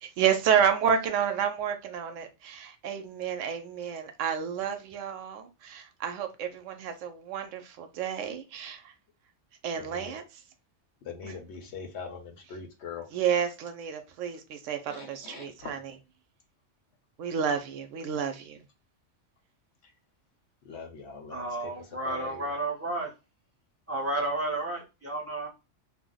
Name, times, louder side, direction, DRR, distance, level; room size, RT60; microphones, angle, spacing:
voice 1, 0.0-8.9 9.6-10.2 11.2-11.3 13.1-15.8 17.2-18.6, right 8 dB, 80° right, 0.9 m, -30 dB
voice 2, 9.7-10.2 11.0-13.1 14.9-15.8 19.8-19.9 20.6-21.7 22.0-22.6, left 5 dB, 70° left, 0.9 m, -42 dB
voice 3, 21.3-23.1 23.9-25.5, right 2 dB, 15° right, 0.7 m, -32 dB
2.5 x 2.0 x 3.6 m
omnidirectional pair, 1.3 m